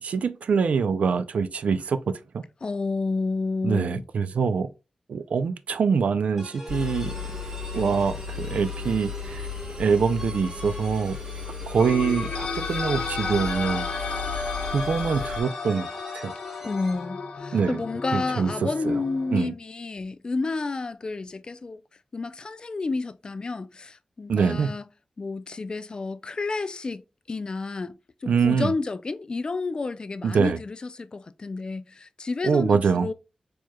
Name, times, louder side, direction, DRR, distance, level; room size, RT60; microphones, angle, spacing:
voice 1, 0.0-2.4 3.6-4.7 5.1-7.2 7.7-9.5 9.8-11.2 11.7-13.9 14.7-15.9 16.1-16.3 17.5-17.8 18.1-19.0 19.3-19.5 24.3-24.7 28.3-28.7 30.2-30.6 32.4-33.1, right 5 dB, 85° right, 0.3 m, -24 dB
voice 2, 2.6-4.1 16.6-21.8 22.1-24.8 25.2-27.0 27.3-33.1, left 3 dB, 40° left, 0.3 m, -30 dB
sound 1, 6.4-17.1, equal, 10° right, 1.1 m, -43 dB
Engine, 6.7-15.4, left 5 dB, 55° right, 1.3 m, -35 dB
sound 2, 11.8-19.4, left 4 dB, 70° left, 0.9 m, -33 dB
4.5 x 3.0 x 2.2 m
wide cardioid pair, 90°, 2 cm